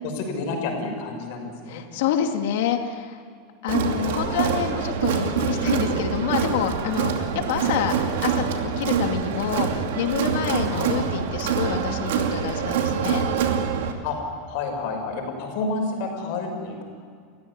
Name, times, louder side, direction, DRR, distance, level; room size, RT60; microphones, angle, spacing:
voice 1, 0.0-1.8 4.1-4.5 10.7-10.9 14.0-14.2 14.5-16.8, left 3 dB, 55° left, 3 dB, 6.0 m, -30 dB
voice 2, 1.7-3.2 3.6-13.3, left 9 dB, 70° left, 4 dB, 2.5 m, -27 dB
Crowd, 3.7-13.9, right 7 dB, 90° right, 2.6 m, -25 dB
29.0 x 15.5 x 9.7 m, 2.2 s
supercardioid pair, 170°, 0 cm